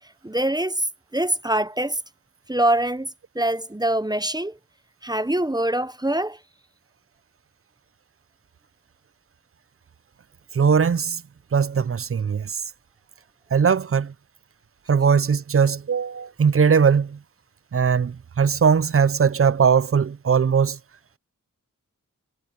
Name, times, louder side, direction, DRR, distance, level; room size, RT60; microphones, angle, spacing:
voice 1, 0.2-0.9 1.1-2.0 2.5-3.1 3.3-4.6 5.0-6.4, right 1 dB, 10° right, 0.8 m, -24 dB
voice 2, 10.5-11.2 11.5-12.6 13.5-14.1 14.9-17.2 17.7-20.8, right 6 dB, 45° right, 0.5 m, -20 dB
wide cardioid pair, 70°, 32 cm